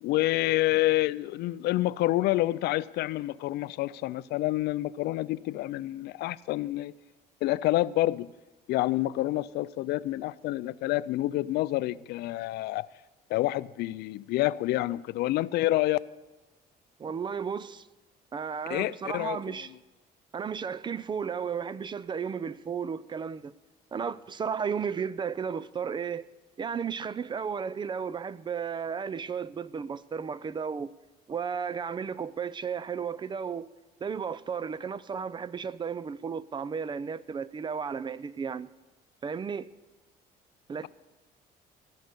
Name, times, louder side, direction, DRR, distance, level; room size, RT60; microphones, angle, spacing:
voice 1, 0.0-6.9 7.4-8.3 8.7-12.9 13.3-16.0 18.7-19.6, left 16 dB, 75° left, 0.4 m, -28 dB
voice 2, 17.0-17.9 18.3-19.7 20.3-23.5 23.9-26.3 26.6-30.9 31.3-33.7 34.0-38.7 39.2-39.7 40.7-40.9, right 6 dB, 25° right, 0.4 m, -34 dB
15.5 x 6.5 x 8.2 m
cardioid pair, 110°, 17 cm